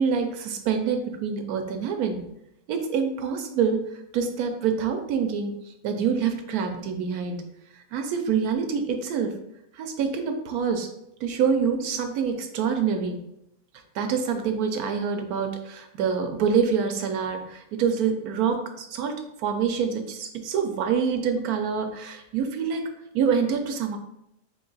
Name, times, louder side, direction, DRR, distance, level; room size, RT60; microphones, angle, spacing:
voice 1, 0.0-2.2 2.7-3.8 4.1-5.5 5.8-7.4 7.9-9.3 9.8-10.9 11.2-13.2 13.9-22.9 23.1-24.0, right 6 dB, 70° right, 5 dB, 1.0 m, -26 dB
3.6 x 3.5 x 3.9 m, 0.82 s
omnidirectional pair, 1.8 m